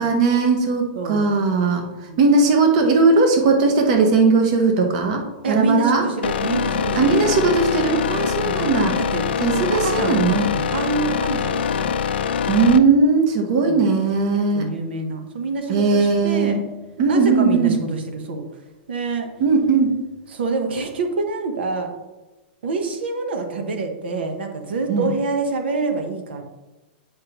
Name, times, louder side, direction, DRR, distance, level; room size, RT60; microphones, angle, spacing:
voice 1, 0.0-1.8 2.2-5.2 5.5-6.0 6.9-8.9 9.4-10.5 12.5-14.7 15.7-16.6 17.0-17.7 19.4-19.9 24.9-25.1, right 4 dB, 40° right, 3 dB, 0.9 m, -18 dB
voice 2, 0.9-1.3 2.1-2.2 5.4-7.2 8.4-9.3 9.7-12.0 13.6-13.9 14.5-16.6 17.1-18.5 18.9-19.3 20.3-21.9 22.6-26.4, right 3 dB, 80° right, 5 dB, 1.0 m, -26 dB
sound 1, 6.2-12.8, left 7 dB, 85° left, 0.5 m, -23 dB
8.5 x 5.1 x 3.0 m, 1.1 s
supercardioid pair, 170°, 6 cm